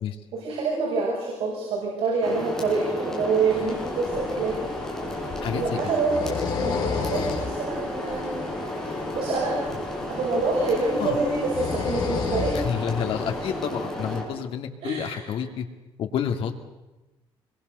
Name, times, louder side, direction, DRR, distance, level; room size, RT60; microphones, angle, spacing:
voice 1, 0.3-4.6 5.1-8.4 8.8-9.6 10.1-12.6 14.8-15.3, right 3 dB, 85° right, -4 dB, 6.7 m, -27 dB
sound 1, 2.2-14.2, left 1 dB, 5° left, 5.4 m, -32 dB
sound 2, 3.5-13.6, left 5 dB, 45° left, 4.8 m, -33 dB
voice 2, 5.4-5.8 11.0-11.2 12.5-15.7 16.0-16.5, left 8 dB, 70° left, 5 dB, 2.5 m, -29 dB
25.5 x 22.5 x 6.8 m, 1.1 s
cardioid pair, 175°, 10 cm